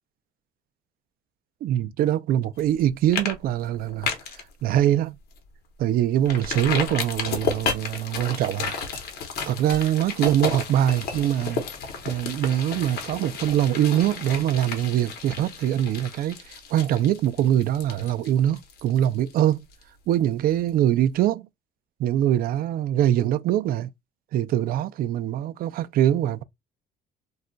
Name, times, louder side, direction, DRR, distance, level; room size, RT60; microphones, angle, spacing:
voice 1, 1.6-4.1 4.6-5.2 5.8-8.8 9.5-11.6 12.1-19.7 20.1-21.5 22.0-23.9 24.3-26.4, right 11 dB, 60° right, 0.4 m, -23 dB
sound 1, 2.6-2.8 3.1-3.3 3.6-4.4 4.9-5.0 5.4-5.5 6.3-19.8 20.1-20.2, left 5 dB, 70° left, 0.9 m, -32 dB
2.3 x 2.1 x 3.8 m
cardioid pair, 110°, 17 cm